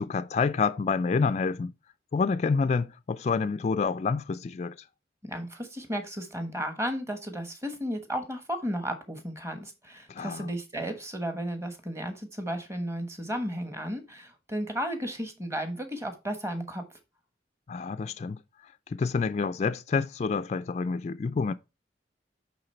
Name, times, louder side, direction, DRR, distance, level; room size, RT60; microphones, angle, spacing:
voice 1, 0.0-1.7 2.1-4.8 10.1-10.5 17.7-18.4 18.9-21.5, left 5 dB, 40° left, 0.3 m, -28 dB
voice 2, 5.2-16.8, equal, 15° right, 1.2 m, -34 dB
8.8 x 3.6 x 4.3 m
head